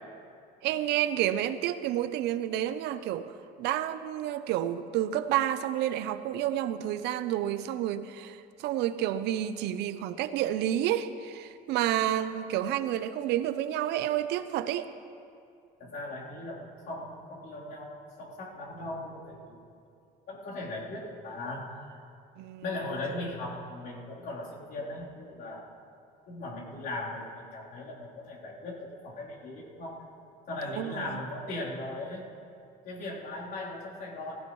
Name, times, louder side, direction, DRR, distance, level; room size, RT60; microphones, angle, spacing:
voice 1, 0.6-3.3 3.6-14.9 22.4-22.6 30.8-31.2, right 12 dB, 85° right, 12 dB, 0.6 m, -30 dB
voice 2, 15.8-19.6 20.3-22.0 22.6-25.7 26.3-30.0 30.5-32.2 32.8-34.4, left 2 dB, 70° left, -5 dB, 3.5 m, -38 dB
17.5 x 15.5 x 3.1 m, 2.4 s
cardioid pair, 110°, 17 cm